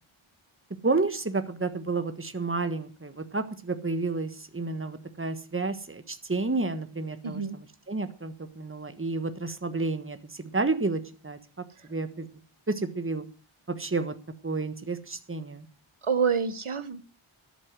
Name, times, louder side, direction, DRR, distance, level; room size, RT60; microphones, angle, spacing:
voice 1, 0.8-11.4 11.9-12.3 12.7-13.2 13.7-14.1 14.4-15.7, right 3 dB, 25° right, 9 dB, 1.4 m, -30 dB
voice 2, 7.2-7.6 16.0-17.0, right 6 dB, 75° right, 12 dB, 1.5 m, -27 dB
13.0 x 8.4 x 7.6 m, 0.38 s
wide cardioid pair, 55°, 49 cm